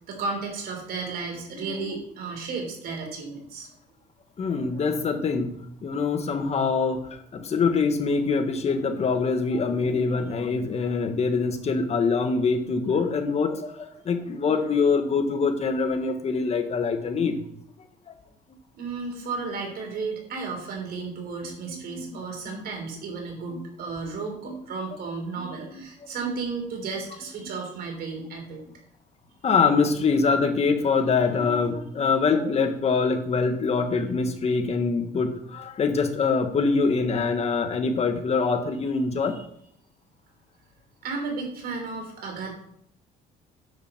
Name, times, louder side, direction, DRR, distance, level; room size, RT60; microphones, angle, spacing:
voice 1, 0.1-3.7 18.7-28.6 39.3-39.4 41.0-42.5, right 4 dB, 65° right, 2 dB, 3.5 m, -33 dB
voice 2, 1.5-2.0 4.4-5.5 5.8-17.4 18.1-18.2 21.7-22.2 22.5-22.6 23.5-23.6 24.0-24.1 24.4-24.6 25.7-25.8 29.4-39.3, left 4 dB, 40° left, 6 dB, 1.5 m, -24 dB
9.8 x 6.1 x 4.4 m, 0.69 s
cardioid pair, 110°, 17 cm